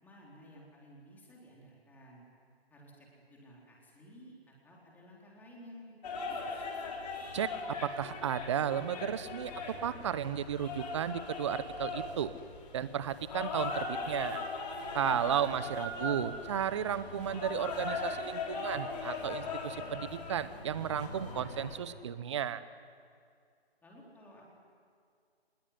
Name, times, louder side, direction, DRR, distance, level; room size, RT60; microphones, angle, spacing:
voice 1, 0.0-2.2 2.7-6.0 6.3-6.7 15.0-15.4 23.8-24.6, equal, 5° left, -3 dB, 4.0 m, -55 dB
sound 1, 6.0-21.8, left 3 dB, 40° left, 4.3 m, -39 dB
voice 2, 7.3-9.5 9.8-12.3 12.7-14.4 14.9-22.6, right 9 dB, 30° right, 15 dB, 0.9 m, -34 dB
25.5 x 21.0 x 9.8 m, 2.3 s
figure-of-eight pair, 150°, 32 cm